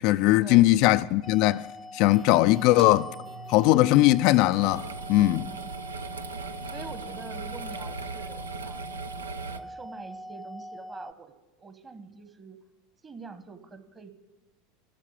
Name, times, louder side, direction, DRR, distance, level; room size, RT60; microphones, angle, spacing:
voice 1, 0.0-1.7 1.9-3.1 3.5-5.5, left 17 dB, 55° left, 0.3 m, -20 dB
sound 1, 1.2-11.1, left 1 dB, ahead, 0.7 m, -43 dB
sound 2, 2.1-7.0, right 4 dB, 55° right, 1.6 m, -47 dB
sound 3, 4.6-9.6, right 4 dB, 80° right, 0.5 m, -38 dB
voice 2, 6.7-8.9 9.5-11.3 11.6-12.6 13.0-14.1, right 4 dB, 25° right, 1.3 m, -45 dB
12.5 x 7.3 x 9.9 m
figure-of-eight pair, 80°, 0 cm